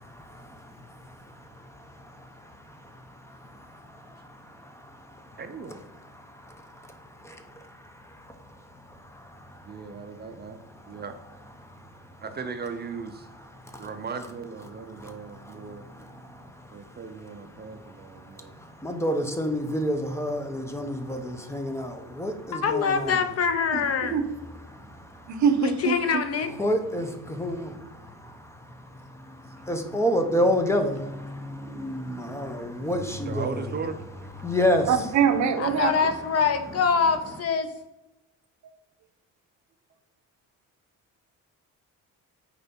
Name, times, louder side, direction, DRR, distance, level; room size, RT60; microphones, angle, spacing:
voice 1, 0.0-5.4 6.1-8.5 8.9-9.8 10.8-11.0 11.6-11.9 13.6-13.9 14.9-17.0 17.6-23.2 24.7-25.4 26.6-33.6 34.4-34.9 35.8-35.9, equal, 10° left, 6 dB, 0.7 m, -31 dB
voice 2, 5.4-5.9 9.6-10.6 10.9-11.2 12.2-13.3 13.8-15.9 16.7-18.6 33.2-34.0, right 5 dB, 30° right, 7 dB, 0.6 m, -37 dB
voice 3, 22.5-24.2 25.6-26.5 35.6-37.7, left 6 dB, 50° left, 9 dB, 0.8 m, -24 dB
voice 4, 23.7-24.2 25.3-26.0 34.9-35.9, right 7 dB, 60° right, 9 dB, 0.8 m, -23 dB
6.7 x 4.4 x 5.2 m, 0.94 s
cardioid pair, 150°, 32 cm